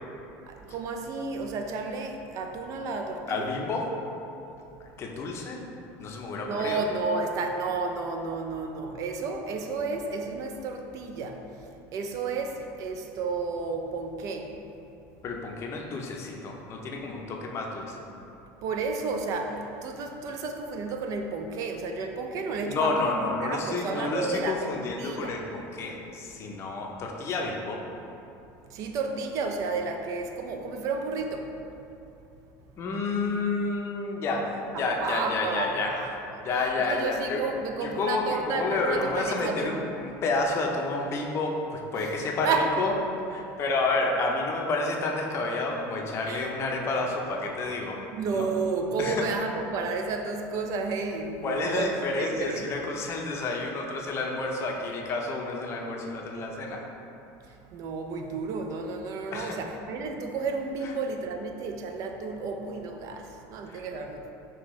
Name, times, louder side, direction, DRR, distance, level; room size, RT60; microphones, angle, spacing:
voice 1, 0.5-3.5 6.4-11.4 11.9-14.5 18.6-25.4 28.7-31.5 34.7-36.1 36.3-36.5 36.8-39.8 42.0-42.1 42.4-42.7 46.3-46.5 48.1-52.7 57.7-64.3, right 4 dB, 50° right, 4 dB, 0.4 m, -32 dB
voice 2, 3.3-3.9 5.0-5.6 6.0-6.8 15.2-18.0 22.7-27.8 32.8-34.5 34.8-35.9 36.4-37.4 37.8-39.7 40.0-42.5 42.8-42.9 43.3-48.0 48.3-48.5 49.0-49.3 51.4-56.8 59.3-59.6 63.7-63.8, left 3 dB, 35° left, 0 dB, 0.5 m, -30 dB
5.3 x 2.8 x 3.0 m, 2.8 s
supercardioid pair, 130°, 7 cm